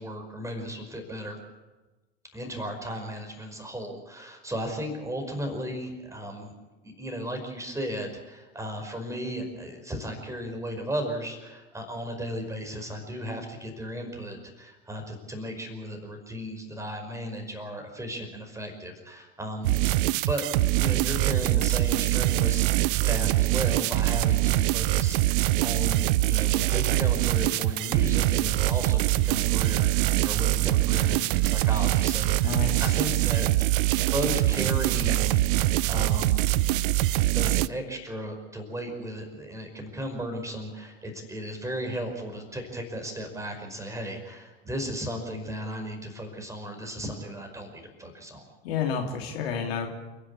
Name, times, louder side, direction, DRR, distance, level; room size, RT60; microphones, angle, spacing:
voice 1, 0.0-1.4 2.3-6.5 6.8-20.0 20.3-33.7 34.1-36.5 37.3-48.4, equal, 10° right, 4 dB, 5.3 m, -35 dB
sound 1, 19.6-37.7, right 16 dB, 55° right, 0.6 m, -24 dB
voice 2, 32.4-32.9 48.6-49.9, left 6 dB, 65° left, 2 dB, 3.0 m, -30 dB
29.5 x 11.0 x 8.5 m, 1.2 s
figure-of-eight pair, 75°, 33 cm